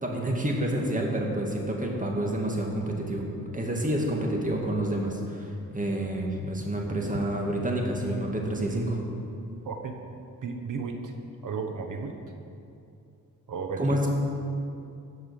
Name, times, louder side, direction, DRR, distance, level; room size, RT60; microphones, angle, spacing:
voice 1, 0.0-3.2 3.5-9.0 13.8-14.1, right 1 dB, 20° right, 0 dB, 2.2 m, -28 dB
voice 2, 9.6-10.1 10.4-11.1 11.4-12.2 13.5-14.0, right 5 dB, 60° right, 5 dB, 1.2 m, -34 dB
16.0 x 5.5 x 6.9 m, 2.6 s
cardioid pair, 90°, 35 cm